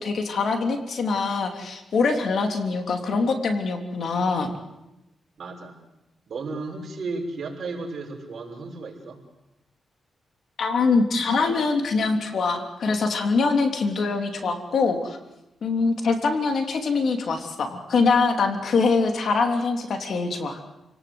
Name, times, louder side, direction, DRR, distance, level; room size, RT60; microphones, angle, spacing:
voice 1, 0.0-4.5 10.6-15.2 15.6-20.6, left 4 dB, 65° left, 5 dB, 3.4 m, -23 dB
voice 2, 5.4-5.7 6.3-9.2, right 3 dB, 60° right, 1 dB, 6.2 m, -34 dB
28.5 x 18.5 x 8.0 m, 0.94 s
cardioid pair, 110°, 0 cm